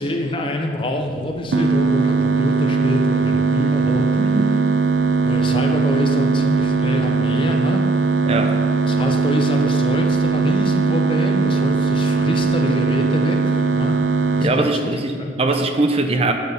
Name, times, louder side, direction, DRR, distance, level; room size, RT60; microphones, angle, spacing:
voice 1, 0.0-4.0 5.2-7.8 8.9-14.0 14.4-14.9 15.2-15.4, left 1 dB, 30° left, 3 dB, 0.6 m, -26 dB
sound 1, 1.5-14.5, right 4 dB, 85° right, 0.5 m, -19 dB
voice 2, 4.2-4.5 8.3-8.6 14.4-16.3, right 2 dB, 35° right, 5 dB, 0.5 m, -21 dB
8.4 x 4.5 x 5.0 m, 2.2 s
head